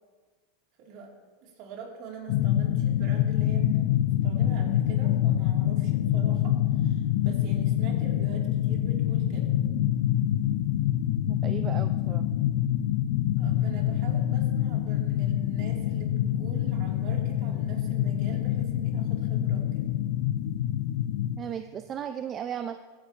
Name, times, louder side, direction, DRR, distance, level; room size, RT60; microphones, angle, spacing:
voice 1, 0.8-1.1 1.4-3.9 4.2-9.5 13.4-19.9, right 4 dB, 55° right, 0 dB, 2.7 m, -44 dB
sound 1, 2.3-21.4, left 11 dB, 65° left, 0.5 m, -26 dB
voice 2, 11.3-12.2 21.4-22.8, right 9 dB, 30° right, 9 dB, 0.4 m, -36 dB
16.5 x 9.6 x 2.9 m, 1.4 s
supercardioid pair, 120°, 0 cm